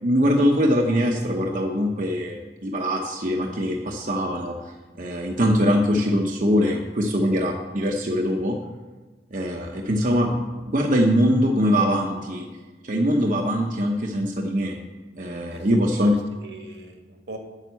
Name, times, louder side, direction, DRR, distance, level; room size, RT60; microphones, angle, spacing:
voice 1, 0.0-4.5 5.0-8.5 9.3-12.5 12.8-14.8 15.2-16.1, equal, 45° right, 1 dB, 0.9 m, -22 dB
voice 2, 15.3-17.4, right 2 dB, 75° right, 3 dB, 1.8 m, -42 dB
9.1 x 6.6 x 8.3 m, 1.3 s
head